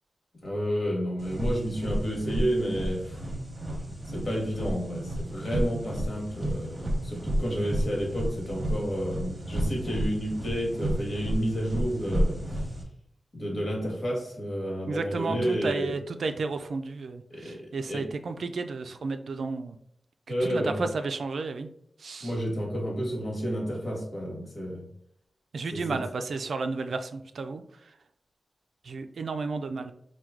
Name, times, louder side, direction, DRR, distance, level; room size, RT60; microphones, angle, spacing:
voice 1, 0.4-3.2 4.1-12.4 13.3-15.9 17.3-17.6 17.9-18.1 20.3-20.8 22.2-24.8 25.7-26.0, equal, 50° left, -1 dB, 1.3 m, -30 dB
sound 1, 1.2-12.8, right 1 dB, 25° right, 0.9 m, -31 dB
voice 2, 14.9-19.8 20.3-21.7 22.0-22.3 25.5-28.0 28.8-29.9, right 4 dB, 85° right, 8 dB, 0.4 m, -32 dB
4.5 x 2.3 x 3.5 m, 0.72 s
wide cardioid pair, 125°, 0 cm